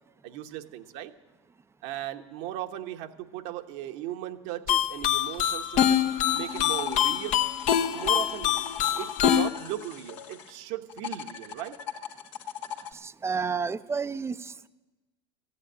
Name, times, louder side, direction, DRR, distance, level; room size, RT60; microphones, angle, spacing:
voice 1, 0.2-1.1 1.8-6.0 6.3-7.4 7.9-8.6 9.0-11.8, right 13 dB, 65° right, 6 dB, 1.2 m, -37 dB
sound 1, 4.7-9.5, left 10 dB, 50° left, 0.9 m, -25 dB
sound 2, 6.1-10.6 10.9-12.9, left 8 dB, 75° left, 1.5 m, -40 dB
voice 2, 12.9-14.7, right 5 dB, 15° right, 13 dB, 0.6 m, -31 dB
15.0 x 9.9 x 8.9 m, 1.1 s
hypercardioid pair, 95°, 16 cm